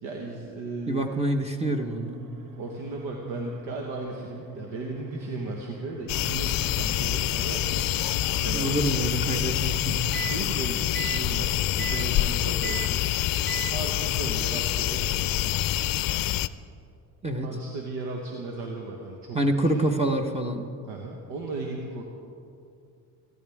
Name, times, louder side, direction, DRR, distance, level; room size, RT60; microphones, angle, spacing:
voice 1, 0.0-1.1 2.6-8.8 10.2-13.1 13.7-15.3 17.4-19.4 19.7-19.8 20.9-22.0, right 3 dB, 80° right, 0 dB, 1.5 m, -36 dB
voice 2, 0.9-2.2 8.5-10.0 17.2-17.5 19.3-20.7, right 1 dB, 15° right, 4 dB, 1.2 m, -26 dB
sound 1, 1.6-10.4 10.9-11.3 11.8-12.1 12.6-13.0 13.5-13.8, right 5 dB, 50° right, 1.2 m, -40 dB
sound 2, 6.1-16.5, left 14 dB, 55° left, 0.6 m, -26 dB
27.5 x 11.0 x 3.6 m, 2.5 s
supercardioid pair, 70°, 42 cm